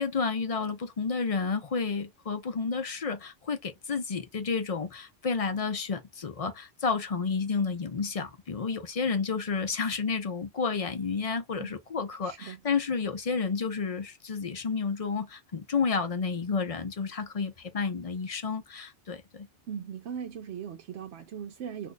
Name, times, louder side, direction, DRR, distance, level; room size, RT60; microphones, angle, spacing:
voice 1, 0.0-19.5, left 5 dB, 40° left, 0.5 m, -31 dB
voice 2, 12.2-12.6 19.7-21.9, right 8 dB, 75° right, 0.9 m, -39 dB
2.6 x 2.4 x 3.8 m
omnidirectional pair, 1.2 m